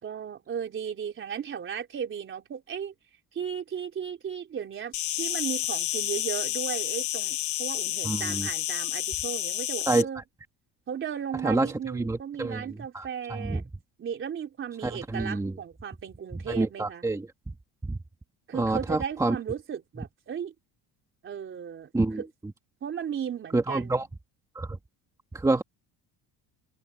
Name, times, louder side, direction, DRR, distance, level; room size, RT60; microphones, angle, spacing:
voice 1, 0.0-2.9 3.3-10.2 10.9-13.6 14.0-17.0 18.5-20.5 21.2-21.9 22.2-22.3 22.8-24.1, right 8 dB, 30° right, 3.7 m, -35 dB
Insect, 4.9-10.0, left 13 dB, 45° left, 1.3 m, -30 dB
voice 2, 8.0-8.5 9.9-10.2 11.4-12.6 12.9-13.6 14.8-15.5 16.5-17.2 17.8-18.0 18.5-19.4 21.9-22.2 23.5-24.1 24.5-24.8 25.3-25.6, right 2 dB, 10° right, 2.2 m, -27 dB
cardioid pair, 175°, 40 cm